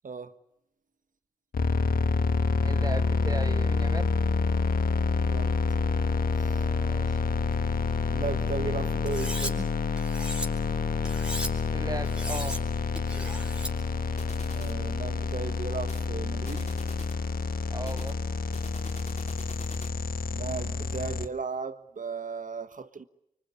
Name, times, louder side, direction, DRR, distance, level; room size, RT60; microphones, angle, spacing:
voice 1, 0.0-0.4 5.2-5.6 6.4-6.7 8.1-9.7 14.5-16.7 20.3-23.0, right 5 dB, 65° right, 1.5 m, -36 dB
sound 1, 1.5-21.3, left 4 dB, 80° left, 1.4 m, -28 dB
voice 2, 2.6-4.1 6.8-7.2 11.7-12.6 17.7-18.2, right 2 dB, 25° right, 1.7 m, -37 dB
Cutlery silverware, 9.1-9.5 10.0-10.5 11.0-11.5 12.0-12.6 13.0-13.7, equal, 5° right, 4.3 m, -36 dB
sound 2, 14.2-14.8 15.8-16.1 16.4-17.2 17.8-20.0, left 3 dB, 50° left, 2.7 m, -46 dB
24.5 x 24.0 x 9.8 m
cardioid pair, 40°, 15 cm